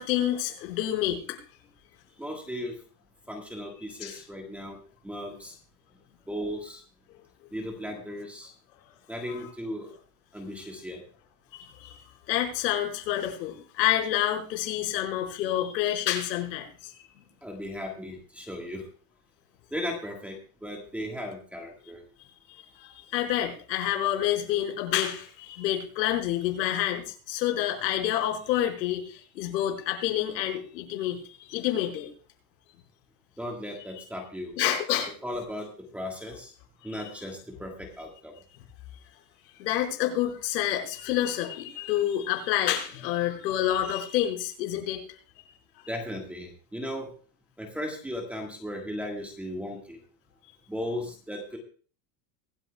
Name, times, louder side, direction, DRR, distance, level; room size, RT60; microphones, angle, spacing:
voice 1, 0.0-1.4 4.0-4.2 9.3-9.5 11.5-12.0 12.3-17.1 22.8-32.1 34.6-35.1 39.6-45.0, left 12 dB, 80° left, 2 dB, 5.3 m, -28 dB
voice 2, 2.2-2.8 3.3-5.6 6.3-6.8 7.5-8.5 9.1-9.9 10.3-11.0 17.4-18.9 19.7-22.0 33.4-34.5 35.2-36.5 36.8-38.3 45.9-47.1 47.6-50.0 50.7-51.6, equal, 5° right, 0 dB, 1.6 m, -36 dB
24.5 x 8.9 x 2.3 m, 0.40 s
supercardioid pair, 170°, 50 cm